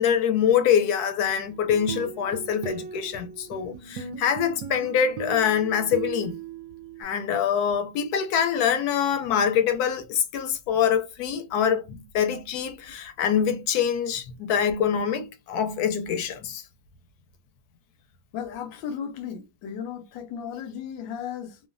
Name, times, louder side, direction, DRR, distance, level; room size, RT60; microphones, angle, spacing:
voice 1, 0.0-6.4 7.0-16.6, left 8 dB, 70° left, 0.9 m, -25 dB
sound 1, 1.5-7.0, right 7 dB, 70° right, 0.8 m, -38 dB
voice 2, 18.3-21.6, left 8 dB, 90° left, 1.3 m, -35 dB
3.0 x 2.2 x 2.4 m
omnidirectional pair, 2.0 m